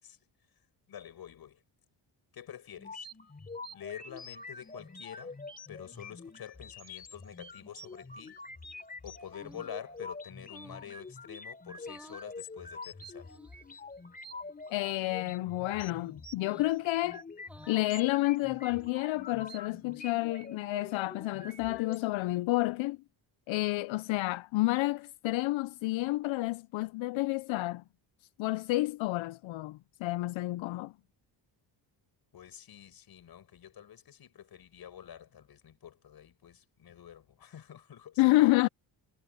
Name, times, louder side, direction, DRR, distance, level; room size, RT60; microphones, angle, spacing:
voice 1, 0.9-1.6 2.3-3.1 3.7-5.3 5.7-8.4 9.0-13.3 32.3-38.2, left 9 dB, 55° left, 7.0 m, -47 dB
sound 1, 2.8-22.0, left 3 dB, 20° left, 3.5 m, -46 dB
sound 2, 9.3-9.8 10.4-10.9 11.7-12.3 13.2-13.8 14.6-15.0 16.3-16.8 17.4-17.9 18.6-19.2, right 1 dB, 5° right, 2.3 m, -54 dB
voice 2, 14.7-17.2 17.7-23.0 23.5-27.8 28.4-30.9 38.2-38.7, left 19 dB, 85° left, 0.6 m, -30 dB
cardioid pair, 155°, 45 cm